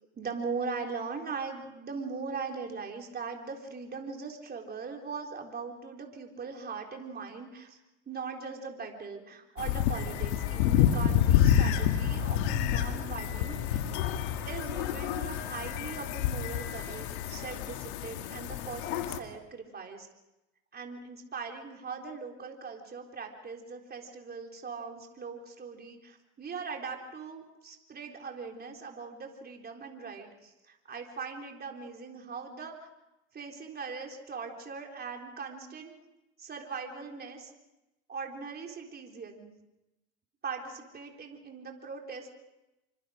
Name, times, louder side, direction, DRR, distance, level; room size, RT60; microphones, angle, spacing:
voice 1, 0.2-7.8 8.1-13.9 14.4-20.1 20.7-32.9 33.3-35.9 36.4-37.5 38.1-39.5 40.4-42.3, right 5 dB, 30° right, 2 dB, 3.9 m, -40 dB
sound 1, 9.6-19.2, left 10 dB, 85° left, 2.1 m, -28 dB
27.0 x 25.0 x 5.1 m, 0.97 s
supercardioid pair, 110°, 33 cm